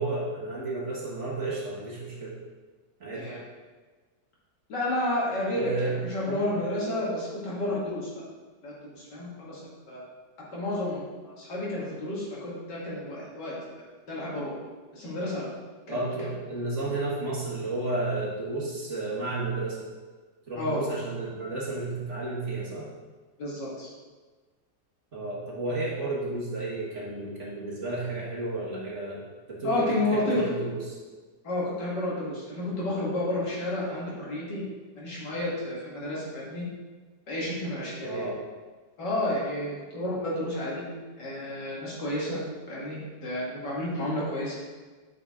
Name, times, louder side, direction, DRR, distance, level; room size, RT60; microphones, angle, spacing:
voice 1, 0.0-2.3 3.0-3.2 5.5-5.9 6.3-6.4 15.9-19.8 20.5-22.9 25.1-29.2 29.5-29.8 30.1-31.0 38.0-38.4, right 2 dB, 45° right, -5 dB, 1.6 m, -32 dB
voice 2, 4.7-8.2 8.6-9.6 9.9-10.0 10.5-14.6 14.9-15.5 15.9-16.3 20.6-20.8 23.4-23.9 29.6-30.4 31.4-34.6 35.0-36.7 37.3-38.3 39.0-40.9 41.2-42.4 42.7-44.6, left 1 dB, 70° left, -5 dB, 2.5 m, -31 dB
8.7 x 5.4 x 3.7 m, 1.4 s
omnidirectional pair, 2.0 m